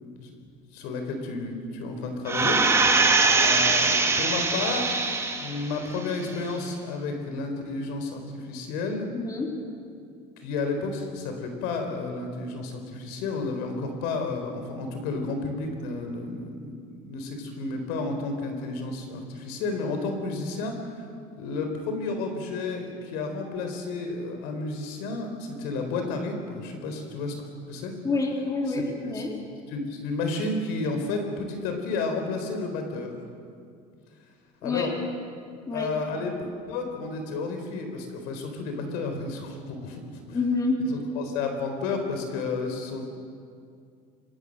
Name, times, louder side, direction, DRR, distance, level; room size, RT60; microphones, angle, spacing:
voice 1, 0.7-2.9 3.2-5.0 5.3-9.1 10.4-21.0 21.4-27.3 27.7-27.9 28.7-28.8 29.1-29.2 29.7-33.1 34.6-34.9 35.7-36.4 36.7-40.0 40.3-40.4 40.8-43.0, left 3 dB, 80° left, 5 dB, 4.2 m, -31 dB
sound 1, 2.3-5.7 6.1-6.2, right 3 dB, 15° right, 2.5 m, -22 dB
voice 2, 9.1-9.5 28.0-29.3 34.6-34.9 35.7-36.2 40.3-40.8, left 3 dB, 20° left, 0 dB, 3.9 m, -28 dB
25.0 x 22.5 x 6.6 m, 2.3 s
cardioid pair, 120°, 16 cm